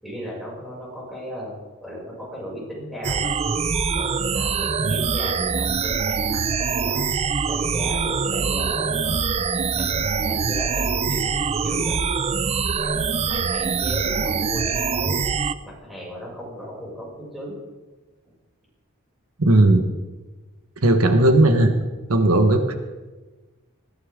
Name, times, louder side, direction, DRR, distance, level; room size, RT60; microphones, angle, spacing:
voice 1, 0.0-1.5 1.8-3.3 3.9-9.2 9.7-12.0 12.8-15.2 15.6-17.6, equal, ahead, -5 dB, 6.7 m, -35 dB
sound 1, 3.0-15.5, right 5 dB, 30° right, 0.4 m, -24 dB
voice 2, 19.4-19.8 20.8-21.7 22.1-22.7, right 1 dB, 80° right, 6 dB, 1.4 m, -16 dB
20.0 x 15.5 x 3.7 m, 1.2 s
head